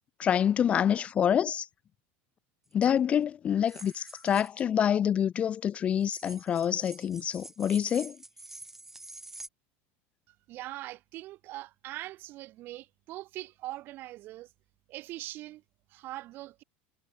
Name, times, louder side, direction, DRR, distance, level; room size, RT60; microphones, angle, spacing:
voice 1, 0.2-1.7 2.7-8.2, left 9 dB, 20° left, 0.4 m, -27 dB
sound 1, 2.7-2.9 3.7-4.6 6.0-9.5, right 2 dB, 5° right, 1.4 m, -47 dB
voice 2, 10.3-14.5 14.9-15.6 15.9-16.6, right 16 dB, 35° right, 0.7 m, -42 dB
supercardioid pair, 170°, 6 cm